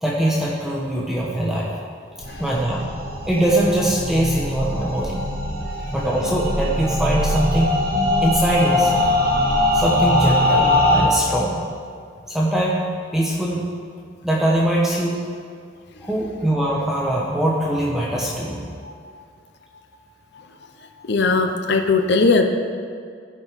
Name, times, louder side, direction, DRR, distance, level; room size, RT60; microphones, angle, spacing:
voice 1, 0.0-1.7 2.4-2.9 3.2-5.2 5.9-7.7 8.2-9.1 9.7-11.6 12.3-12.8 13.1-13.6 14.2-15.2 16.0-18.7, right 1 dB, ahead, -5 dB, 1.0 m, -22 dB
sound 1, 2.2-11.0, left 1 dB, 55° right, 1.8 m, -21 dB
voice 2, 21.1-22.4, left 3 dB, 65° left, 5 dB, 0.7 m, -18 dB
15.5 x 5.5 x 4.8 m, 2.2 s
head